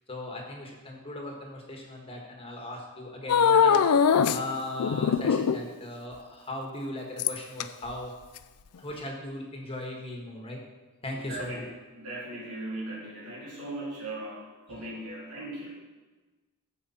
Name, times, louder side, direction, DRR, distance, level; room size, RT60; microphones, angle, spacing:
voice 1, 0.1-3.8 4.3-8.1 8.8-10.6 11.0-11.6 14.7-14.8, left 1 dB, 25° left, 1 dB, 1.5 m, -38 dB
sound 1, 3.3-4.4 4.8-5.7 7.2-7.6 8.4-8.5, left 7 dB, 85° left, 0.4 m, -21 dB
voice 2, 11.1-11.7 11.9-15.7, right 1 dB, 80° right, -5 dB, 3.3 m, -38 dB
14.5 x 5.1 x 4.3 m, 1.2 s
head